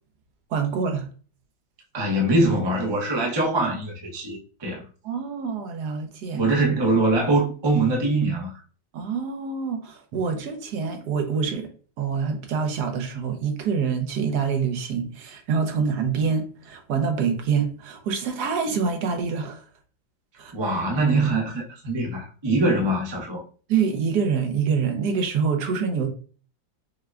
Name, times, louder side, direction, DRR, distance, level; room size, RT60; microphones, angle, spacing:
voice 1, 0.5-1.1 5.0-6.4 8.9-11.7 12.0-19.6 20.4-20.5 23.7-26.1, right 6 dB, 65° right, 1.2 m, -26 dB
voice 2, 1.9-4.8 6.3-8.6 20.5-23.4, right 2 dB, 35° right, 0.4 m, -23 dB
5.6 x 2.2 x 2.3 m
omnidirectional pair, 2.0 m